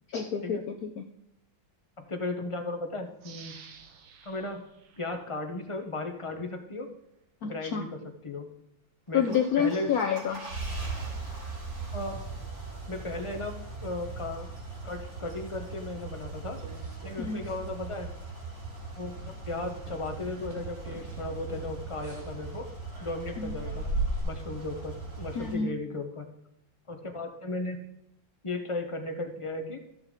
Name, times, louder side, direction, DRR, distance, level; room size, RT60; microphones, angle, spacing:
voice 1, 0.1-1.0 7.4-7.9 9.1-10.4 17.2-17.5 23.4-23.6 25.4-25.8, left 7 dB, 65° left, 5 dB, 1.0 m, -29 dB
voice 2, 2.0-3.6 4.2-4.6 5.0-6.9 7.4-8.0 8.2-8.5 9.1-9.9 11.9-12.2 12.9-14.5 14.8-16.6 17.0-18.1 19.0-22.7 23.0-23.9 24.2-26.3 26.9-27.8 28.4-29.8, left 2 dB, 30° left, 4 dB, 0.6 m, -36 dB
sound 1, 3.2-5.9 6.3-6.4, right 6 dB, 90° right, 1.8 m, -52 dB
sound 2, 9.1-25.6, right 3 dB, 60° right, 4.4 m, -40 dB
sound 3, 16.1-17.6 17.8-18.2 18.5-18.7 19.1-24.2, right 2 dB, 40° right, 1.9 m, -38 dB
13.5 x 6.7 x 3.7 m, 0.84 s
omnidirectional pair, 2.1 m